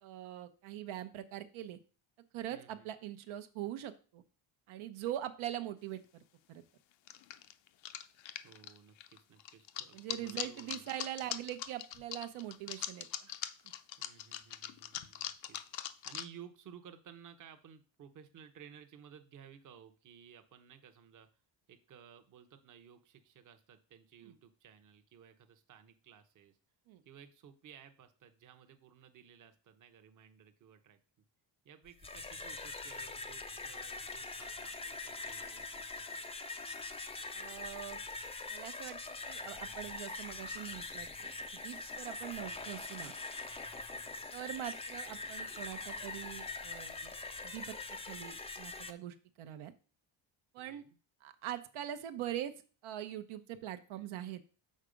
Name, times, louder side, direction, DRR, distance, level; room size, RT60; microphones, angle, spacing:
voice 1, 0.0-1.8 2.3-4.2 4.7-6.2 6.5-6.6 9.9-13.3 24.3-24.4 26.9-27.0 37.3-38.0 38.5-39.0 39.3-43.1 44.3-47.1 47.4-49.7 50.5-50.8 51.2-52.5 52.8-54.4, right 12 dB, 80° right, 9 dB, 0.8 m, -43 dB
voice 2, 2.5-2.9 8.4-11.2 14.0-21.3 21.7-26.6 27.1-31.0 31.6-36.3 43.9-44.3 50.6-51.0, right 8 dB, 40° right, 7 dB, 0.8 m, -57 dB
sound 1, 5.9-6.0 7.1-16.3, left 12 dB, 70° left, 0.6 m, -41 dB
sound 2, 31.9-48.9, left 3 dB, 15° left, 0.3 m, -43 dB
6.5 x 4.6 x 5.0 m, 0.37 s
cardioid pair, 150°, 48 cm